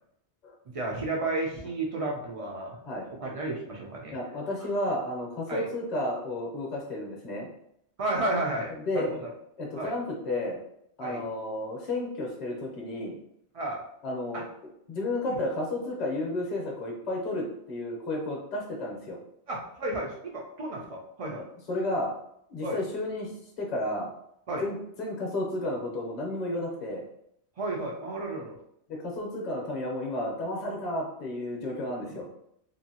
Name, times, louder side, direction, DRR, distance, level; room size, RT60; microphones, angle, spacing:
voice 1, 0.7-2.8 3.2-4.1 5.5-5.7 8.0-9.3 9.8-9.9 11.0-11.2 13.5-13.8 14.3-14.4 19.5-21.5 22.6-22.8 24.5-24.7 27.6-28.6 32.0-32.2, right 2 dB, 50° right, -1 dB, 0.4 m, -32 dB
voice 2, 4.1-7.5 8.7-9.1 9.6-10.6 11.0-13.2 14.0-14.4 14.9-19.2 21.3-22.1 22.5-24.1 24.6-27.0 28.9-32.3, left 1 dB, 40° left, -2 dB, 0.8 m, -32 dB
2.7 x 2.6 x 2.7 m, 0.73 s
omnidirectional pair, 1.2 m